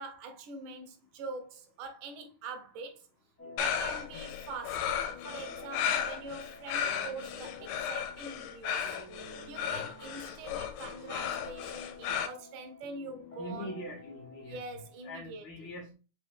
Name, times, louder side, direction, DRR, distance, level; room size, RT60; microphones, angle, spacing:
voice 1, 0.0-3.1 3.6-9.0 9.5-13.7 14.5-15.4, right 3 dB, 85° right, 2.3 m, -44 dB
sound 1, 3.4-15.0, left 3 dB, 10° left, 0.5 m, -50 dB
sound 2, 3.6-12.3, left 8 dB, 85° left, 2.2 m, -34 dB
voice 2, 13.4-15.9, equal, 65° left, 1.1 m, -43 dB
5.3 x 2.8 x 3.3 m
omnidirectional pair, 3.6 m